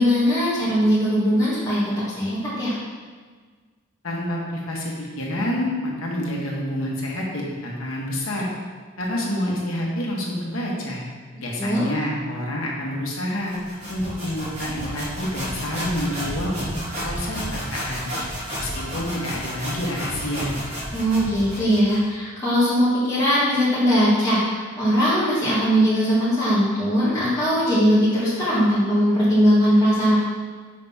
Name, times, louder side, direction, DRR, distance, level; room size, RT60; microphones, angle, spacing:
voice 1, 0.0-1.8 2.2-2.8 11.6-11.9 20.9-30.2, equal, 20° left, -12 dB, 1.5 m, -20 dB
voice 2, 4.0-8.5 9.0-11.0 11.4-13.6 13.9-16.7 17.0-18.0 18.6-20.5, left 1 dB, 90° left, -3 dB, 1.4 m, -28 dB
sound 1, 13.5-22.1, equal, 35° right, 1.6 m, -32 dB
5.7 x 3.5 x 5.6 m, 1.5 s
head